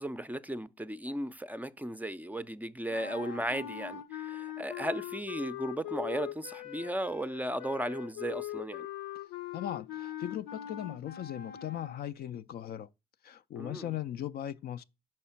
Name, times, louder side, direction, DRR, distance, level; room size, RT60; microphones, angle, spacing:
voice 1, 0.0-8.9 13.6-13.9, right 1 dB, 10° right, 0.5 m, -36 dB
sound 1, 2.9-12.1, left 12 dB, 80° left, 0.7 m, -41 dB
voice 2, 9.5-12.9 13.2-14.8, left 11 dB, 50° left, 0.4 m, -38 dB
5.5 x 4.2 x 5.7 m
hypercardioid pair, 55°, 20 cm